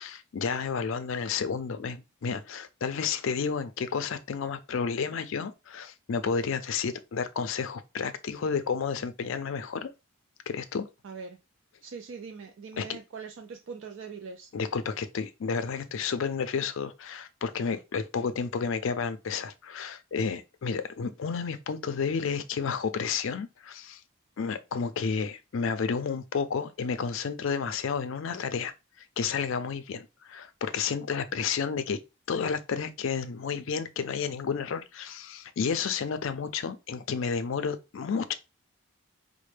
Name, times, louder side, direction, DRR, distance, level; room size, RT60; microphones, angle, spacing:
voice 1, 0.0-9.9 10.5-10.9 12.8-12.9 14.5-24.0 24.4-28.7 29.2-32.0 32.3-38.3, left 6 dB, 65° left, 0.4 m, -31 dB
voice 2, 11.0-11.4 11.8-14.5, right 5 dB, 55° right, 0.3 m, -42 dB
4.1 x 2.1 x 3.2 m
head